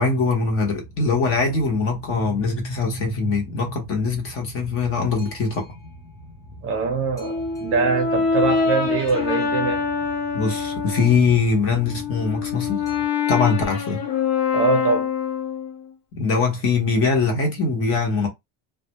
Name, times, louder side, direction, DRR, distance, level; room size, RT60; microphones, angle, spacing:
voice 1, 0.0-5.7 10.3-12.8 13.3-14.0 16.2-18.3, left 4 dB, 35° left, 0.8 m, -22 dB
Boat Water vehicle, 0.6-13.1, right 1 dB, 10° left, 0.4 m, -43 dB
voice 2, 6.6-9.8 14.5-15.1, right 4 dB, 35° right, 0.6 m, -23 dB
Brass instrument, 7.2-11.2 11.7-15.8, left 5 dB, 60° left, 0.7 m, -25 dB
2.2 x 2.0 x 2.8 m
cardioid pair, 165°, 41 cm